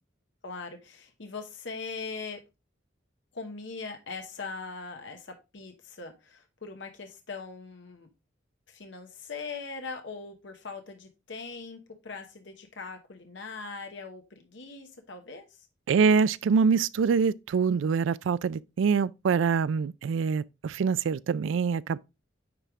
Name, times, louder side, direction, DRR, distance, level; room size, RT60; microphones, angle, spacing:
voice 1, 0.4-2.4 3.3-8.1 8.7-15.7, left 4 dB, 70° left, 1.1 m, -41 dB
voice 2, 15.9-22.0, right 5 dB, 80° right, 0.3 m, -25 dB
9.7 x 3.5 x 3.6 m
head